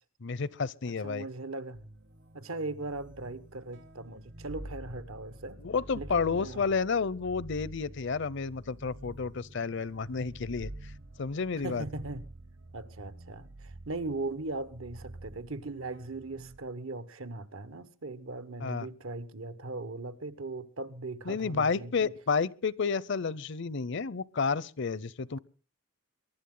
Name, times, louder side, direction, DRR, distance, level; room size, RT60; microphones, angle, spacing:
voice 1, 0.2-1.2 5.6-10.9 11.2-11.8 18.6-18.9 21.3-25.4, left 5 dB, 60° left, 0.6 m, -31 dB
voice 2, 0.9-1.8 2.3-5.6 5.9-6.7 11.6-12.2 12.7-22.1, right 2 dB, 80° right, 1.3 m, -39 dB
sound 1, 1.7-16.6, right 1 dB, 55° right, 1.0 m, -48 dB
23.0 x 12.0 x 3.8 m
head